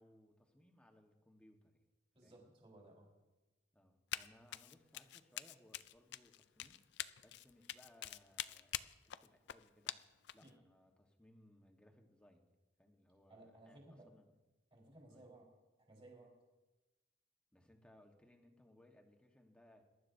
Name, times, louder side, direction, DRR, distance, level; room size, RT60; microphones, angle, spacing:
voice 1, 0.0-1.8 2.2-2.5 3.7-10.0 10.3-12.5 12.8-14.2 15.1-15.3 17.5-19.8, left 1 dB, 5° left, 2 dB, 1.2 m, -66 dB
voice 2, 2.1-3.1 10.4-10.5 13.3-14.1 14.7-15.5 15.9-16.3, right 2 dB, 30° right, -2 dB, 3.9 m, -59 dB
Run, 4.1-4.3 4.5-10.5, left 12 dB, 65° left, 0.4 m, -45 dB
22.0 x 11.5 x 2.7 m, 1.1 s
head